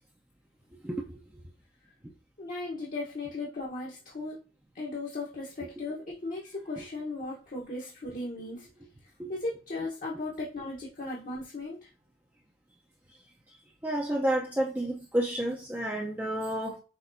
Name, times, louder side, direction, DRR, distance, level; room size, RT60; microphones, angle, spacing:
voice 1, 0.8-1.2 6.8-6.9 9.2-9.3 13.8-16.8, right 1 dB, 10° right, 0.6 m, -30 dB
voice 2, 2.4-4.4 4.7-8.7 9.3-11.9, left 2 dB, 45° left, 1.0 m, -36 dB
5.9 x 3.2 x 2.6 m
head